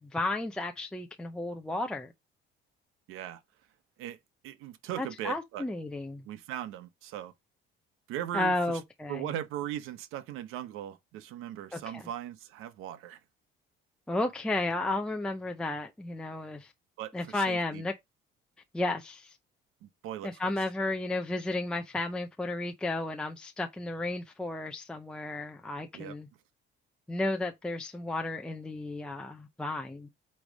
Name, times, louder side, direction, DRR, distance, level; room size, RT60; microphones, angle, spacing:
voice 1, 0.1-2.1 5.0-6.2 8.3-9.3 11.7-12.0 14.1-16.7 17.1-17.9 18.7-19.4 20.2-26.3 27.1-30.1, left 2 dB, 5° left, 0.5 m, -33 dB
voice 2, 3.1-3.4 4.0-4.2 4.4-5.6 6.2-7.3 8.1-8.8 9.1-13.2 17.0-17.8 19.8-20.5 25.9-26.2, right 11 dB, 80° right, 1.0 m, -39 dB
8.6 x 3.2 x 5.1 m
cardioid pair, 160°, 21 cm